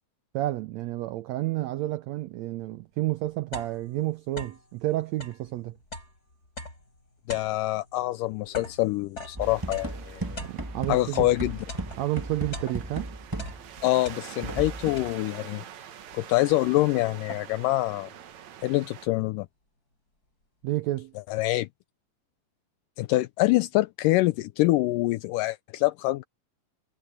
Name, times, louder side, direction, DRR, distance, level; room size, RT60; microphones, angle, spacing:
voice 1, 0.3-5.8 10.4-11.3 12.0-13.1 20.6-21.1, right 16 dB, 80° right, 1.5 m, -30 dB
sound 1, 2.6-2.7 3.1-4.7 5.1-11.4 11.7-13.1 13.3-14.6 15.0-15.5 16.1-16.2 16.5-17.7, left 2 dB, 25° left, 7.6 m, -42 dB
voice 2, 7.3-10.4 10.9-11.6 13.8-15.6 16.1-18.1 18.6-19.5 21.3-21.7 23.0-26.2, left 18 dB, 80° left, 2.1 m, -25 dB
sound 2, 9.3-13.8 14.4-15.1, right 2 dB, 20° right, 0.5 m, -36 dB
sound 3, 9.4-19.1, right 10 dB, 60° right, 2.4 m, -45 dB
omnidirectional pair, 3.9 m